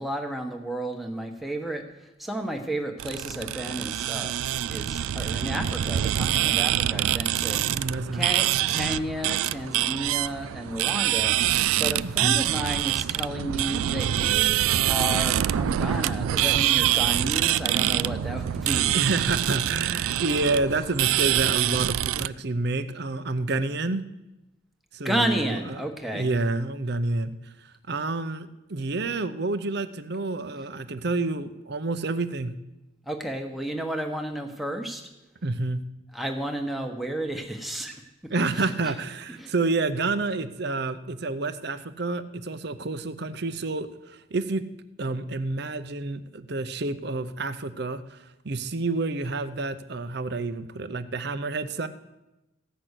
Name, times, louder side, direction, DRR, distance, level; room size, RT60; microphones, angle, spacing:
voice 1, 0.0-1.8 2.2-4.3 4.7-7.6 8.1-11.3 11.8-19.3 25.0-26.3 33.1-35.0 36.1-38.0 38.5-38.9 39.3-39.5, right 1 dB, ahead, 3 dB, 1.1 m, -32 dB
sound 1, 3.0-22.3, right 12 dB, 85° right, 0.3 m, -25 dB
voice 2, 7.7-8.4 12.0-12.4 18.9-24.0 24.9-25.8 26.1-27.4 27.6-32.5 35.4-35.8 38.3-44.7 45.0-48.2 48.4-51.9, right 3 dB, 50° right, 12 dB, 0.7 m, -29 dB
15.0 x 6.0 x 8.1 m, 0.99 s
head